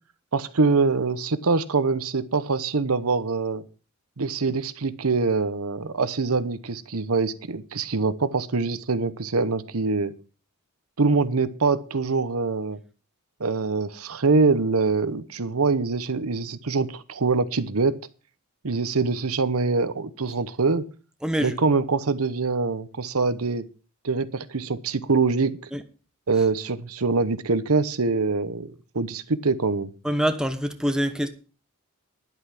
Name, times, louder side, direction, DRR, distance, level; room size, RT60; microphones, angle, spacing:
voice 1, 0.3-3.6 4.2-10.1 11.0-12.8 13.4-18.0 18.6-20.8 21.4-23.6 24.0-25.6 26.3-29.9, right 4 dB, 70° right, 0.9 m, -24 dB
voice 2, 21.2-21.6 25.7-25.8 30.0-31.3, equal, 5° right, 1.1 m, -25 dB
11.0 x 8.2 x 5.9 m
head